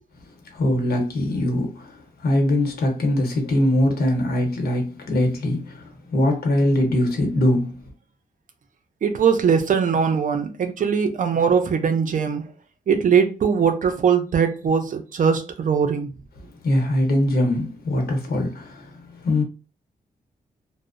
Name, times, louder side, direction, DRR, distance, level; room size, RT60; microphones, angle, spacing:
voice 1, 0.5-1.9 2.2-7.8 16.6-18.9 19.2-19.4, left 1 dB, 80° left, 0.8 m, -22 dB
voice 2, 9.0-12.4 12.9-16.1, right 6 dB, 55° right, 0.4 m, -20 dB
2.6 x 2.0 x 2.4 m
wide cardioid pair, 110°, 16 cm